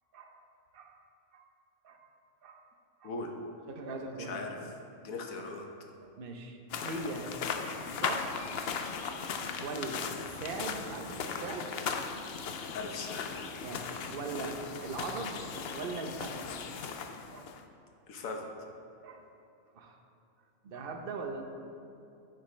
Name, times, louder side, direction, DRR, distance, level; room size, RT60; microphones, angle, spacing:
voice 1, 0.1-0.5 0.7-0.9 1.3-1.4 1.8-2.1 2.4-2.6 3.0-3.1 3.7-4.7 6.0-7.4 7.6-8.7 9.0-9.2 9.6-12.2 13.6-13.8 14.1-16.5 17.3-17.5 19.0-19.2 19.7-20.0 20.6-21.4, right 3 dB, 50° right, 3 dB, 0.9 m, -41 dB
voice 2, 4.2-4.5 5.0-5.7 12.7-13.3 18.1-18.4, left 3 dB, 90° left, 2 dB, 1.4 m, -39 dB
sound 1, 6.7-17.6, left 6 dB, 60° left, 0.7 m, -38 dB
9.9 x 9.1 x 3.3 m, 2.7 s
omnidirectional pair, 1.4 m